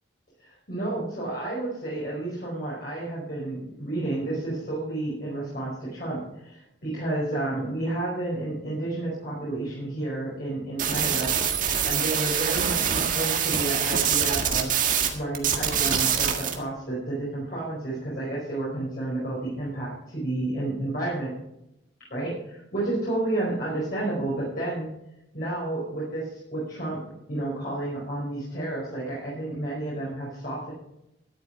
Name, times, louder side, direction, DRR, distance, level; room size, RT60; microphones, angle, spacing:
voice 1, 0.4-11.3 11.8-14.7 15.1-21.3 22.1-24.9 25.3-27.0 27.3-30.7, right 2 dB, 50° left, -6 dB, 5.0 m, -31 dB
sound 1, 10.8-15.1 15.3-16.5, right 8 dB, 45° right, 1.8 m, -24 dB
13.0 x 11.0 x 4.7 m, 0.83 s
head